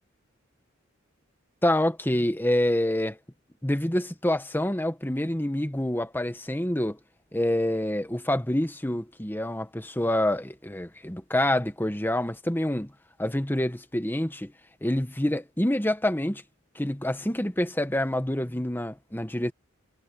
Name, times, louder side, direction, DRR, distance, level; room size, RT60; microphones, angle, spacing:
voice 1, 1.6-3.2 3.6-7.0 7.3-12.9 13.2-14.5 14.8-16.4 16.7-19.5, left 1 dB, 10° left, 1.2 m, -27 dB
head